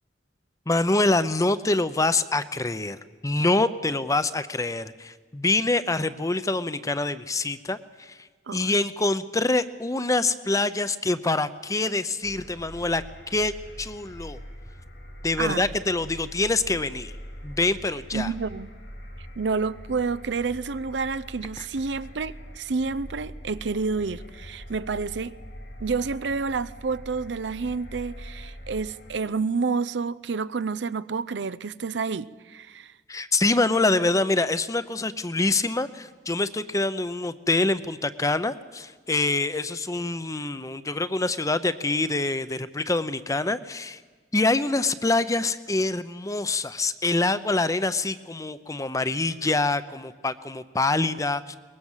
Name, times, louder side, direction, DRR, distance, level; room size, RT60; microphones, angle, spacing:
voice 1, 0.7-3.0 3.2-8.2 8.5-13.5 13.8-14.4 15.2-17.1 17.4-18.3 21.6-21.7 33.1-44.0 44.3-51.6, left 2 dB, 20° left, 0.7 m, -25 dB
sound 1, 12.2-29.2, equal, 75° left, 4.0 m, -43 dB
voice 2, 18.1-18.7 19.4-25.3 25.8-32.9, right 4 dB, 80° right, 0.6 m, -29 dB
23.0 x 20.5 x 7.4 m
head